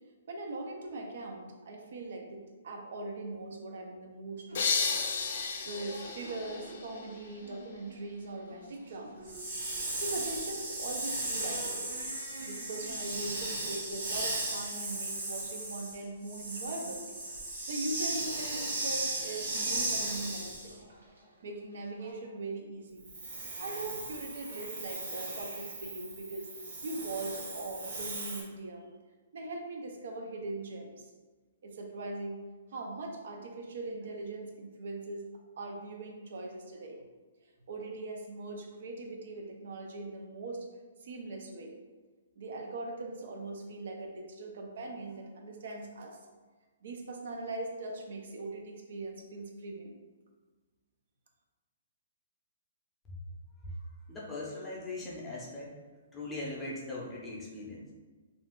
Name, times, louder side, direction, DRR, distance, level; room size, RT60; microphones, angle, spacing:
voice 1, 0.3-5.0 5.6-9.3 10.0-11.9 12.4-17.1 17.7-20.7 21.4-23.1 23.6-26.5 26.8-28.9 29.3-31.1 31.6-32.4 32.7-35.3 35.6-37.0 37.7-40.7 41.0-41.8 42.4-46.2 46.8-50.0, right 2 dB, 65° right, 2 dB, 0.5 m, -40 dB
sound 1, 4.5-7.3, left 5 dB, 65° left, 0.4 m, -33 dB
sound 2, 4.5-22.1, right 1 dB, 85° right, 1.0 m, -52 dB
Hiss, 9.2-20.7 23.0-28.4, right 2 dB, 50° right, 0.8 m, -36 dB
voice 2, 54.1-55.7 56.1-57.8, left 2 dB, 10° left, -5 dB, 0.6 m, -40 dB
2.5 x 2.3 x 3.5 m, 1.4 s
hypercardioid pair, 155°, 0 cm